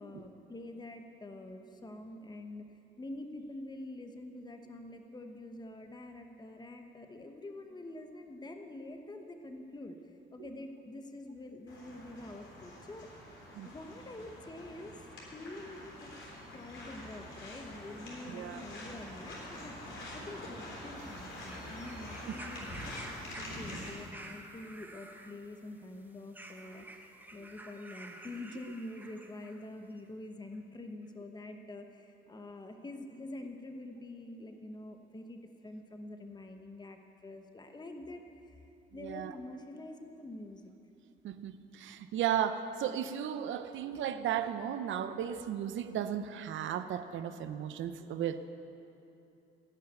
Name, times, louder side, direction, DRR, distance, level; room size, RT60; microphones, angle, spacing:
voice 1, 0.0-2.6 3.0-13.1 13.6-26.9 27.3-38.6 38.9-40.7, left 2 dB, 20° left, 5 dB, 1.1 m, -46 dB
sound 1, 11.7-23.9, left 1 dB, 70° left, 3.7 m, -46 dB
voice 2, 18.3-18.6 39.0-39.3 41.2-48.5, right 9 dB, 75° right, 10 dB, 0.7 m, -35 dB
sound 2, 21.0-29.6 30.5-30.6, right 1 dB, 10° right, 1.1 m, -51 dB
16.5 x 5.7 x 9.4 m, 2.8 s
cardioid pair, 90°, 20 cm